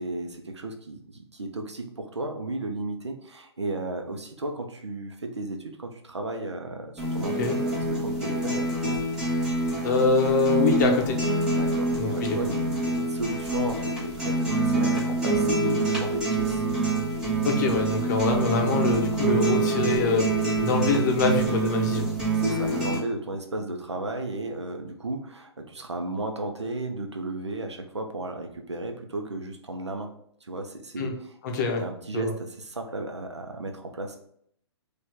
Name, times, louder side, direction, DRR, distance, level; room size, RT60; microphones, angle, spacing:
voice 1, 0.0-9.0 11.5-16.6 22.3-30.1 30.4-31.3 31.8-34.2, right 2 dB, 80° right, 4 dB, 0.7 m, -34 dB
sound 1, 7.0-23.0, right 2 dB, 5° right, 1.5 m, -26 dB
voice 2, 9.8-11.2 11.9-12.4 17.4-20.3 20.6-22.1 31.0-31.1 31.4-31.8 32.1-32.3, left 3 dB, 40° left, 3 dB, 0.8 m, -24 dB
4.4 x 2.5 x 4.6 m, 0.69 s
figure-of-eight pair, 120°, 15 cm